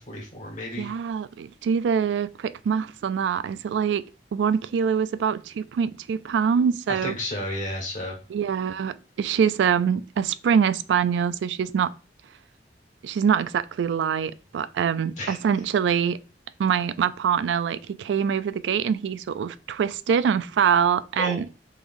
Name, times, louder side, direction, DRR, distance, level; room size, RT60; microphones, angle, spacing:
voice 1, 0.0-0.9 6.9-8.2 15.2-15.4 21.2-21.4, left 1 dB, 45° left, 1.4 m, -32 dB
voice 2, 0.8-4.0 4.3-7.1 8.3-11.9 13.0-16.2 16.6-21.5, right 7 dB, 85° right, 0.3 m, -24 dB
3.8 x 3.1 x 2.5 m
head